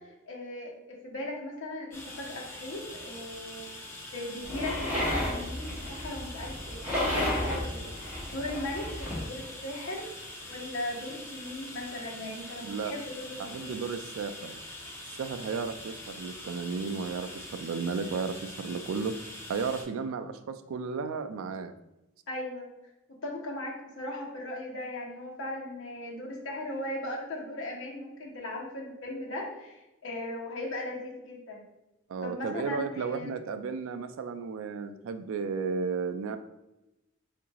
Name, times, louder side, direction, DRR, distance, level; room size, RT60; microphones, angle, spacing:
voice 1, 0.3-3.7 4.1-7.8 8.3-10.0 10.5-13.8 22.3-22.7 23.2-31.7 32.2-33.3, left 1 dB, 65° left, -2 dB, 0.9 m, -38 dB
sound 1, 1.9-19.8, left 1 dB, 10° left, 0.5 m, -44 dB
sound 2, 4.4-9.3, left 1 dB, 5° right, 1.2 m, -32 dB
voice 2, 12.6-12.9 13.4-14.6 15.2-19.2 19.5-21.7 32.1-36.4, right 5 dB, 70° right, 8 dB, 0.3 m, -34 dB
4.6 x 2.5 x 2.9 m, 0.95 s
head